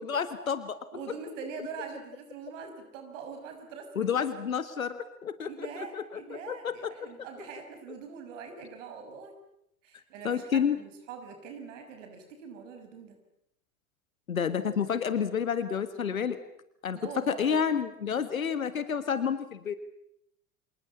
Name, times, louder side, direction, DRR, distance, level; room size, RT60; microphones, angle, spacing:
voice 1, 0.0-0.8 3.9-6.2 6.5-6.7 10.2-10.8 14.3-16.4 16.8-17.0 17.3-19.7, left 7 dB, 80° left, 12 dB, 1.8 m, -29 dB
voice 2, 0.9-4.5 5.5-9.3 9.8-13.2 16.9-17.6, right 5 dB, 60° right, 6 dB, 6.1 m, -43 dB
29.0 x 27.5 x 7.2 m, 0.76 s
figure-of-eight pair, 70°, 41 cm